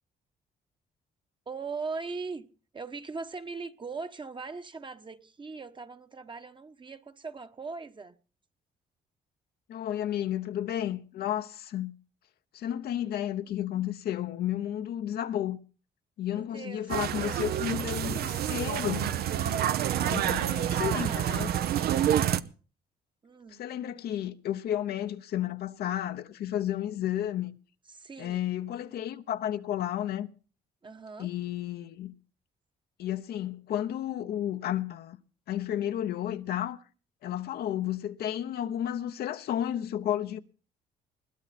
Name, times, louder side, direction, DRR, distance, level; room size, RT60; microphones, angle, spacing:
voice 1, 1.5-2.4 2.7-8.2 16.3-17.5 19.8-21.4 23.2-23.6 27.9-28.5 30.8-31.3, right 4 dB, 30° right, 1.1 m, -40 dB
voice 2, 9.7-11.9 12.5-15.6 16.2-19.2 20.0-21.5 23.5-27.6 28.2-30.3 31.2-32.1 33.0-35.2 35.5-36.8 37.2-40.4, left 11 dB, 70° left, 0.9 m, -32 dB
sound 1, 16.9-22.4, right 10 dB, 70° right, 0.7 m, -28 dB
21.0 x 11.0 x 4.3 m
cardioid pair, 90°, 17 cm